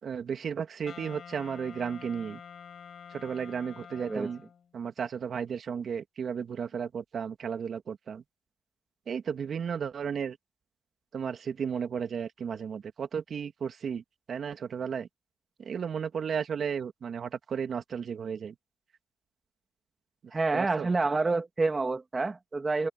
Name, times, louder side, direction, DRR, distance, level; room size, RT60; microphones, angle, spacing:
voice 1, 0.0-2.4 3.1-4.4 4.7-8.2 9.1-10.4 11.1-14.0 14.3-15.1 15.6-18.5 20.2-20.9, right 7 dB, 55° right, 2.0 m, -34 dB
Wind instrument woodwind instrument, 0.8-4.7, left 7 dB, 50° left, 5.6 m, -47 dB
voice 2, 4.0-4.3 20.3-22.9, right 3 dB, 25° right, 2.0 m, -28 dB
cardioid pair, 90°, 0 cm